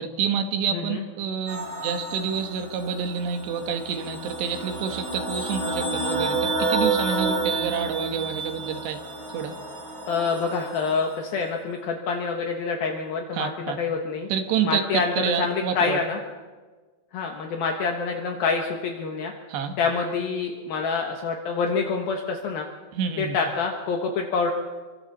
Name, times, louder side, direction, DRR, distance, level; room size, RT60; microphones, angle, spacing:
voice 1, 0.0-9.0 9.3-9.5 13.3-13.8 14.3-16.0 19.5-19.8 22.9-23.4, right 7 dB, 80° right, 7 dB, 3.5 m, -28 dB
voice 2, 0.7-1.0 10.1-14.3 14.6-16.2 17.1-19.3 19.8-22.6 23.2-24.5, left 5 dB, 65° left, 2 dB, 2.9 m, -26 dB
sound 1, 1.5-11.2, right 3 dB, 55° right, 7.9 m, -30 dB
26.0 x 24.5 x 4.2 m, 1.3 s
omnidirectional pair, 4.9 m